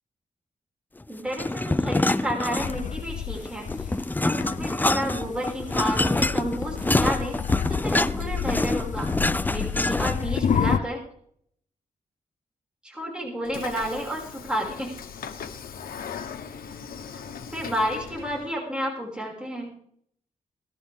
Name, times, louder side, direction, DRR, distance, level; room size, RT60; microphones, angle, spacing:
voice 1, 1.1-3.9 4.2-7.4 7.7-9.1 9.5-11.0 12.8-14.9 17.5-19.8, equal, 5° right, -1 dB, 5.8 m, -31 dB
sound 1, 1.3-3.0 3.4-10.4, left 2 dB, 10° left, 0.5 m, -26 dB
sound 2, 2.6-10.8, left 7 dB, 60° left, 0.8 m, -30 dB
Train / Sliding door, 13.4-18.5, left 7 dB, 90° left, 1.3 m, -39 dB
19.0 x 13.5 x 3.6 m, 0.66 s
cardioid pair, 85°, 15 cm